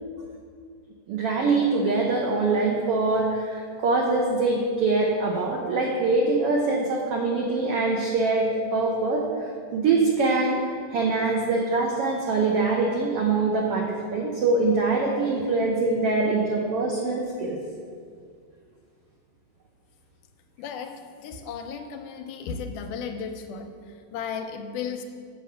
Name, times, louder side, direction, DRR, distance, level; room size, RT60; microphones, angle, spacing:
voice 1, 1.1-9.2 9.7-17.6, right 3 dB, 80° right, -1 dB, 1.3 m, -24 dB
voice 2, 20.6-25.0, left 6 dB, 85° left, 6 dB, 2.1 m, -35 dB
7.6 x 5.5 x 6.4 m, 2.1 s
omnidirectional pair, 3.7 m